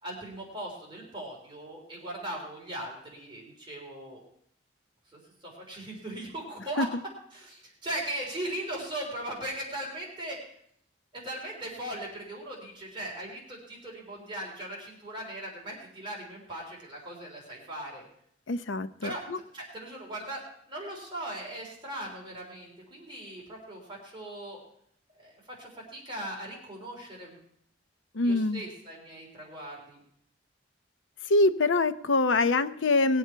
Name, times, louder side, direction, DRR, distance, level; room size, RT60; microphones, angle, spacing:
voice 1, 0.0-4.2 5.1-6.9 7.3-10.5 11.1-18.0 19.0-19.2 19.5-20.4 20.7-24.6 25.2-27.4 28.2-30.0, right 1 dB, 25° right, -2 dB, 3.5 m, -39 dB
voice 2, 18.5-19.4 28.1-28.6 31.3-33.2, left 2 dB, 90° left, 11 dB, 0.7 m, -24 dB
20.0 x 7.9 x 4.5 m, 0.69 s
head